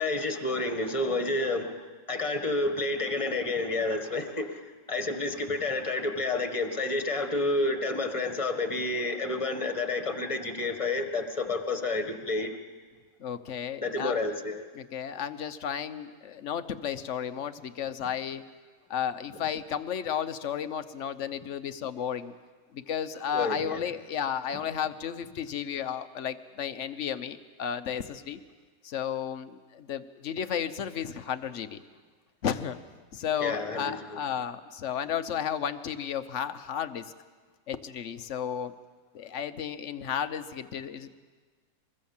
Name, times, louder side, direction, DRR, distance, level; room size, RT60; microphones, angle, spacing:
voice 1, 0.0-4.6 4.9-12.5 13.8-14.6 23.3-23.8 33.4-34.2, left 2 dB, 20° left, 5 dB, 1.7 m, -30 dB
voice 2, 13.2-14.2 14.7-18.4 18.9-22.3 22.7-28.4 28.8-31.8 32.4-32.8 33.1-37.1 37.7-38.7 39.1-41.2, left 8 dB, 50° left, 11 dB, 1.1 m, -33 dB
25.0 x 21.0 x 7.3 m, 1.4 s
omnidirectional pair, 1.8 m